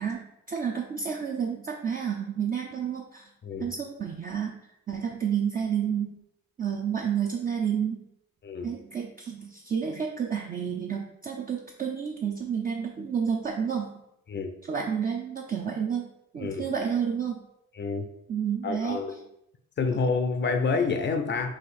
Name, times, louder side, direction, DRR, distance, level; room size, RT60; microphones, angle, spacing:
voice 1, 0.0-3.3 3.6-4.6 4.9-6.1 6.6-8.1 8.6-13.9 14.7-16.1 16.3-17.5 18.3-19.0, right 7 dB, 30° right, 0 dB, 0.5 m, -30 dB
voice 2, 17.7-18.1 18.6-19.1 19.8-21.6, left 4 dB, 35° left, 5 dB, 0.5 m, -28 dB
4.2 x 2.5 x 4.1 m, 0.80 s
cardioid pair, 90°, 30 cm